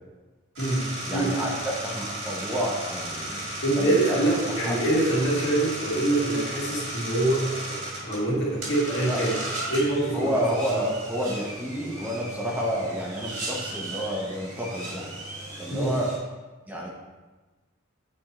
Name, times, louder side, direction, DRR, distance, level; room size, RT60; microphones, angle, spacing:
sound 1, 0.6-16.2, right 1 dB, 65° right, 2.1 m, -35 dB
voice 1, 1.0-3.4 3.8-4.2 4.6-4.8 9.1-9.2 10.1-15.1 15.6-16.1 16.7-16.9, equal, 10° right, -3 dB, 0.8 m, -29 dB
voice 2, 3.6-9.4 9.7-10.3 10.7-10.8 15.7-16.0, right 2 dB, 60° left, -6 dB, 1.9 m, -25 dB
8.8 x 4.3 x 3.0 m, 1.2 s
head